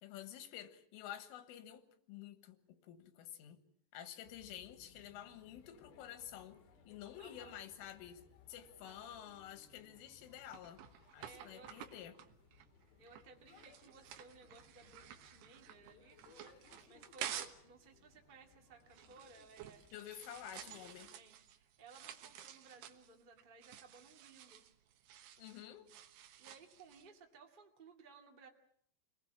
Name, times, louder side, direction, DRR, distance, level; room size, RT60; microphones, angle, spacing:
voice 1, 0.0-3.6 3.9-6.6 6.9-8.2 8.5-10.8 11.1-12.2 19.9-21.1 25.4-25.9, left 11 dB, 90° left, 4.1 m, -50 dB
sound 1, 4.2-21.1, left 5 dB, 55° left, 3.8 m, -65 dB
voice 2, 7.2-7.5 8.8-9.2 11.2-11.7 13.0-16.2 16.8-19.9 20.2-24.6 26.4-28.5, right 4 dB, 45° right, 0.6 m, -60 dB
sound 2, 10.0-17.7 18.0-27.1, right 10 dB, 70° right, 3.0 m, -51 dB
28.0 x 19.5 x 7.4 m
omnidirectional pair, 5.6 m